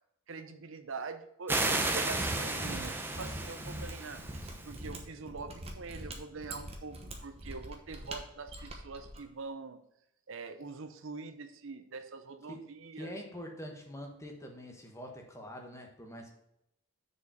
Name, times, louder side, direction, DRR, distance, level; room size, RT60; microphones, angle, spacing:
voice 1, 0.3-9.8 10.3-13.1, right 4 dB, 65° right, 9 dB, 0.7 m, -44 dB
sound 1, 1.5-4.8, right 2 dB, 10° right, 0.7 m, -33 dB
Mechanisms, 2.0-9.2, right 1 dB, 25° right, 1.1 m, -43 dB
voice 2, 13.0-16.3, equal, 15° left, 2 dB, 1.2 m, -44 dB
6.4 x 5.0 x 6.8 m, 0.79 s
head